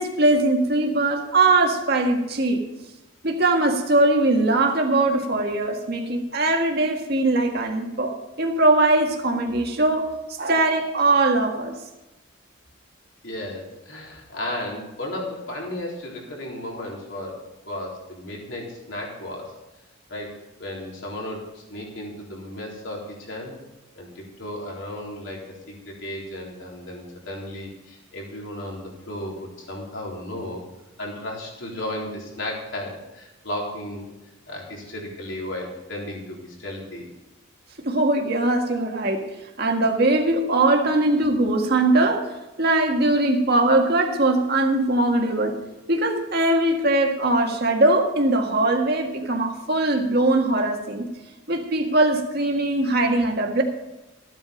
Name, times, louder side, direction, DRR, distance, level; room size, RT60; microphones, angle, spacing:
voice 1, 0.0-2.6 3.2-10.1 10.4-11.7 37.8-39.3 39.6-42.3 42.6-45.6 45.9-51.1 51.5-53.6, right 2 dB, 50° right, 2 dB, 1.8 m, -21 dB
voice 2, 13.2-19.5 20.1-23.6 24.0-30.6 31.0-34.0 34.5-37.1, left 1 dB, 60° left, -2 dB, 3.9 m, -34 dB
14.5 x 8.9 x 5.2 m, 1.0 s
head